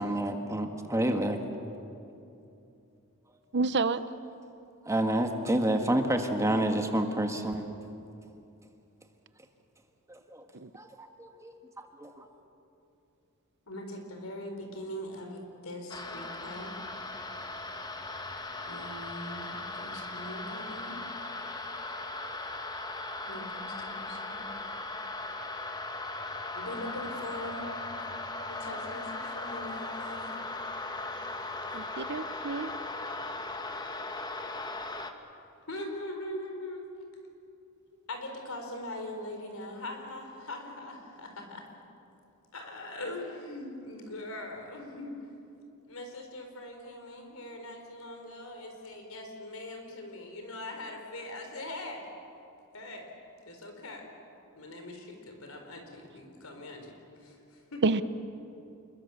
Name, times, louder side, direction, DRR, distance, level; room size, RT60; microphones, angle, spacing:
voice 1, 0.0-1.4 3.3-3.4 4.8-7.7 10.1-10.4 10.7-12.3, right 1 dB, 15° right, 1.7 m, -29 dB
voice 2, 3.5-4.0 10.5-10.7 31.7-32.7 57.8-58.0, right 3 dB, 55° right, 0.8 m, -28 dB
voice 3, 13.7-16.7 18.6-21.0 23.3-24.5 24.9-25.2 26.5-27.7 27.9-28.0 28.5-30.3 35.7-36.9 38.1-41.6 42.5-45.1 45.9-52.1 52.7-53.1 53.4-54.1 54.5-56.9 57.2-58.0, left 1 dB, 80° left, 4.5 m, -41 dB
sound 1, 15.9-35.1, left 2 dB, 20° left, 1.4 m, -38 dB
28.0 x 21.5 x 7.3 m
head